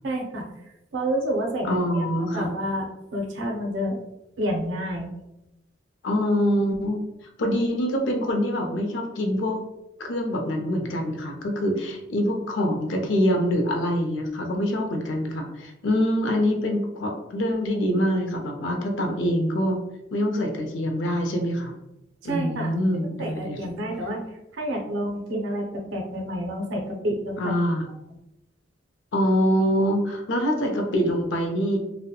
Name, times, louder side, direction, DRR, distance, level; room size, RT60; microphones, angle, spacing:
voice 1, 0.0-0.5 0.9-2.8 3.1-4.0 4.4-5.1 22.2-22.8 23.2-27.6, right 1 dB, 85° right, 1 dB, 0.5 m, -29 dB
voice 2, 1.6-2.5 6.0-7.0 7.4-9.6 10.0-19.8 20.1-21.7 22.2-23.6 27.4-27.9 29.1-31.8, equal, 85° left, 3 dB, 0.5 m, -25 dB
2.7 x 2.1 x 2.2 m, 0.89 s
head